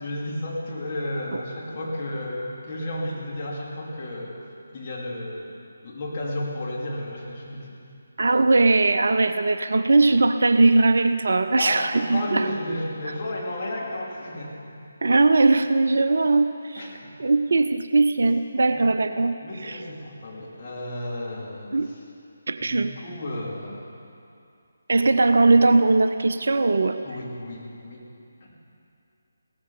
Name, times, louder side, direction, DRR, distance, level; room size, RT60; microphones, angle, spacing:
voice 1, 0.0-4.4 4.7-5.6 5.8-7.8 11.6-14.8 16.8-17.1 18.7-18.9 19.4-21.8 22.6-23.9 27.0-28.0 28.4-28.5, left 1 dB, 30° left, -5 dB, 3.2 m, -32 dB
voice 2, 8.2-12.5 15.0-16.9 17.2-19.3 19.6-19.8 21.7-21.9 22.5-22.9 24.9-27.0, right 3 dB, 55° right, 9 dB, 0.6 m, -20 dB
17.0 x 14.5 x 5.1 m, 2.5 s
figure-of-eight pair, 150°, 0 cm